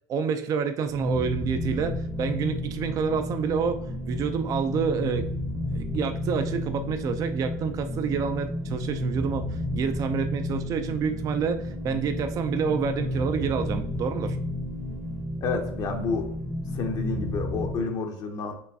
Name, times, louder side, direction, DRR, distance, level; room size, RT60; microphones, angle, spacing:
voice 1, 0.1-5.3 5.7-14.4, right 6 dB, 45° right, 8 dB, 0.4 m, -28 dB
sound 1, 0.8-17.8, left 1 dB, 5° right, 0.7 m, -32 dB
voice 2, 15.4-16.3 16.7-18.5, left 4 dB, 50° left, 4 dB, 0.6 m, -30 dB
4.4 x 3.1 x 2.7 m, 0.72 s
supercardioid pair, 105°, 8 cm